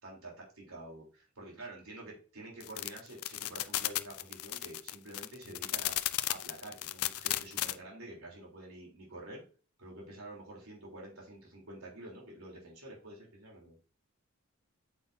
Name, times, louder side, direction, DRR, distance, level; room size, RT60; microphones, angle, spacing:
voice 1, 0.0-6.0 6.3-9.4 9.8-13.8, right 1 dB, 80° right, -2 dB, 3.4 m, -48 dB
sound 1, 2.6-7.7, left 15 dB, 90° left, 0.5 m, -34 dB
8.8 x 7.2 x 2.7 m, 0.36 s
head